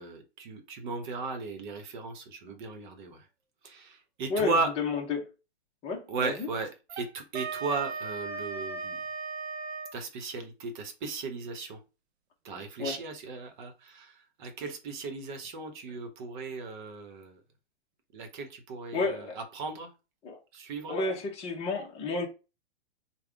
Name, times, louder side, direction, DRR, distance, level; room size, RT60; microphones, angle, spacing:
voice 1, 0.0-3.3 3.6-4.7 6.1-9.0 9.9-11.8 12.4-17.4 18.1-19.9 20.5-21.0, right 4 dB, 45° right, 1.1 m, -36 dB
voice 2, 4.3-5.3 5.8-6.5 12.8-13.0 18.9-19.4 20.2-20.4 20.9-22.3, left 4 dB, 20° left, 0.9 m, -31 dB
Wind instrument woodwind instrument, 6.9-10.0, right 4 dB, 65° right, 0.7 m, -37 dB
3.5 x 2.3 x 3.4 m
hypercardioid pair, 125°, 34 cm